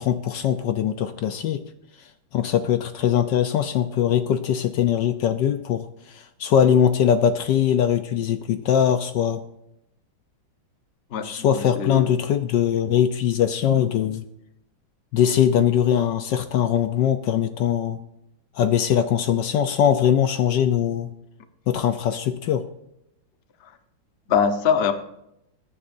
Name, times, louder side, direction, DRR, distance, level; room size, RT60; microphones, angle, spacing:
voice 1, 0.0-1.6 2.3-9.4 11.2-14.2 15.1-18.0 18.5-21.1 21.7-22.6, left 9 dB, 70° left, 9 dB, 1.2 m, -21 dB
voice 2, 11.1-12.1 23.6-23.7 24.3-24.9, left 7 dB, 45° left, 8 dB, 0.8 m, -23 dB
21.0 x 9.7 x 2.6 m, 0.81 s
omnidirectional pair, 2.2 m